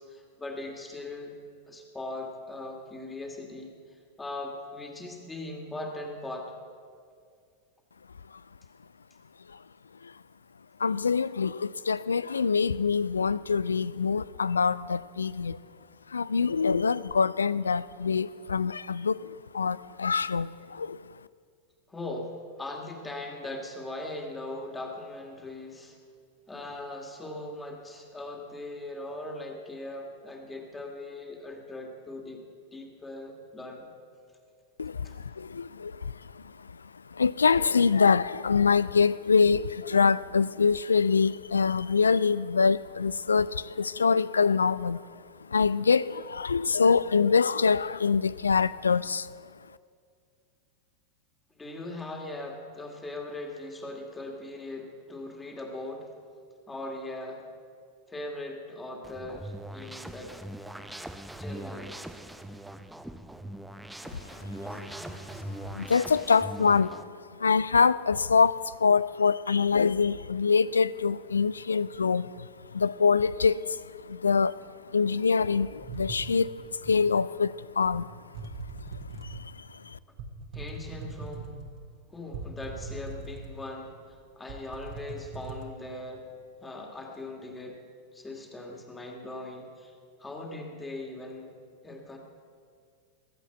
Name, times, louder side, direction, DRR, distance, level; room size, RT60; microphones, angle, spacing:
voice 1, 0.0-1.4 1.7-3.7 4.2-6.5 21.9-26.0 26.5-32.4 32.7-33.9 35.0-35.2 51.6-56.1 56.7-57.4 58.1-60.4 61.4-61.9 80.5-81.7 82.1-84.0 84.4-86.3 86.6-87.8 88.1-89.9 90.2-91.5 91.8-92.2, left 2 dB, 10° left, 2.4 m, -40 dB
voice 2, 10.8-15.6 16.1-21.0 34.8-36.7 37.1-45.0 45.5-49.3 64.7-65.1 65.7-67.0 67.3-74.6 74.9-78.1 79.2-80.0, left 5 dB, 75° left, 0.4 m, -25 dB
sound 1, 59.0-67.0, right 1 dB, 5° right, 0.8 m, -41 dB
sound 2, 75.6-77.1 77.8-78.0 78.3-79.5 80.2-81.8 82.3-83.8 84.1-84.2 84.5-85.7, right 3 dB, 40° right, 1.9 m, -40 dB
21.5 x 8.2 x 8.0 m
figure-of-eight pair, 90°, 0 cm